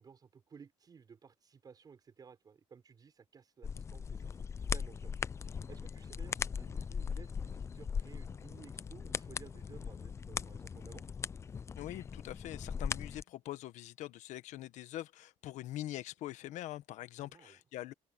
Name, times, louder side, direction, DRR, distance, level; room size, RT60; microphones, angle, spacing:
voice 1, 0.0-5.1 5.6-11.0 17.2-17.6, right 6 dB, 30° right, 6.3 m, -56 dB
sound 1, 3.6-13.2, left 6 dB, 20° left, 0.3 m, -39 dB
voice 2, 11.8-17.9, left 14 dB, 70° left, 1.3 m, -43 dB
cardioid pair, 135°, 13 cm